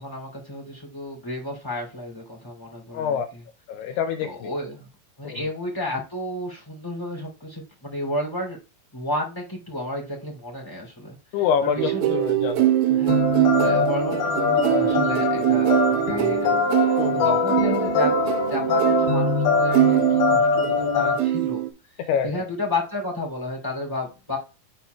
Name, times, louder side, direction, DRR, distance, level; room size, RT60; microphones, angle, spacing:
voice 1, 0.0-3.2 4.2-4.9 5.2-8.6 8.9-11.2 11.6-12.1 13.0-21.6 22.2-24.4, left 1 dB, 10° left, 1.6 m, -32 dB
voice 2, 2.9-3.3 3.7-4.5 5.2-5.5 11.3-13.0 17.0-17.3 22.1-22.5, left 7 dB, 85° left, 2.3 m, -26 dB
sound 1, 11.8-20.9 21.2-21.7, right 14 dB, 85° right, 2.5 m, -23 dB
sound 2, 13.1-21.2, left 5 dB, 65° left, 2.8 m, -23 dB
12.0 x 4.4 x 2.3 m
omnidirectional pair, 5.3 m